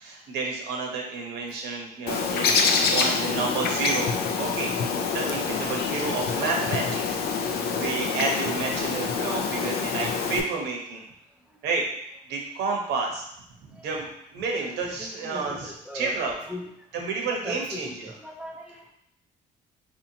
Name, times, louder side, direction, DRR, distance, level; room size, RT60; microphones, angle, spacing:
voice 1, 0.0-2.5 2.9-11.0 11.6-11.8 12.3-13.2 13.8-16.3 16.9-18.1, right 4 dB, 80° right, 0 dB, 0.9 m, -30 dB
Bird, 2.1-10.4, left 5 dB, 70° left, 0.5 m, -26 dB
voice 2, 9.4-10.0 13.7-13.8 14.7-16.7 17.2-17.9 18.2-18.9, equal, 5° right, -1 dB, 0.5 m, -40 dB
4.2 x 2.8 x 2.8 m, 0.73 s
cardioid pair, 110°, 17 cm